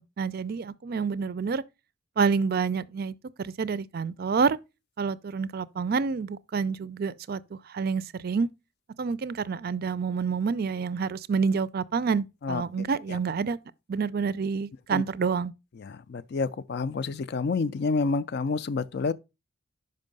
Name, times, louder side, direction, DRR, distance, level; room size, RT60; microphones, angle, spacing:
voice 1, 0.0-1.6 2.2-4.6 5.0-8.5 9.0-13.6 13.9-15.5, right 5 dB, 50° right, 0.4 m, -28 dB
voice 2, 15.8-19.1, left 4 dB, 55° left, 0.4 m, -28 dB
5.5 x 5.4 x 5.2 m
head